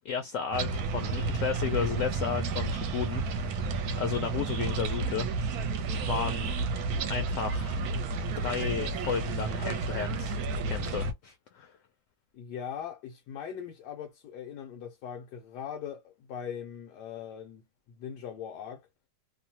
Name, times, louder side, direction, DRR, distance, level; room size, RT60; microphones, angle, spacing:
voice 1, 0.0-3.7 4.0-5.3 6.0-6.5 7.1-7.8 8.4-10.4 10.7-11.8, left 7 dB, 70° left, 0.8 m, -33 dB
sound 1, 0.5-11.1, right 4 dB, 70° right, 1.1 m, -31 dB
voice 2, 12.3-18.9, left 8 dB, 90° left, 1.2 m, -40 dB
3.0 x 2.1 x 2.7 m
omnidirectional pair, 1.8 m